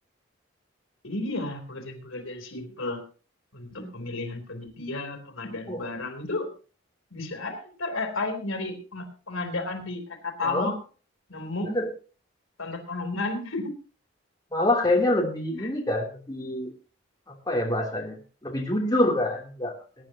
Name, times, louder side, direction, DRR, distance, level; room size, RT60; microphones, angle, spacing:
voice 1, 1.0-3.0 3.5-6.5 7.1-10.8 11.3-11.7 12.6-13.7 15.6-15.7, left 2 dB, 85° left, 5 dB, 3.3 m, -33 dB
voice 2, 14.5-16.7 17.5-18.2 18.4-19.7, left 1 dB, 20° left, -1 dB, 3.1 m, -26 dB
22.5 x 10.5 x 2.9 m, 0.36 s
head